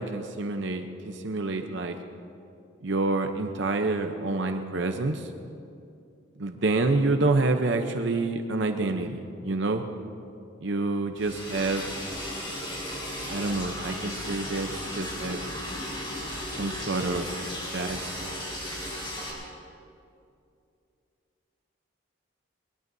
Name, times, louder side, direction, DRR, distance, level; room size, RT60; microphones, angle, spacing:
voice 1, 0.0-2.0 2.8-5.3 6.4-9.9 10.6-11.9 13.3-15.4 16.5-17.3 17.7-18.4, right 3 dB, 65° right, 6 dB, 0.7 m, -28 dB
Liquid, 11.2-19.3, left 1 dB, 25° left, 4.0 m, -35 dB
22.5 x 20.5 x 2.7 m, 2.6 s
head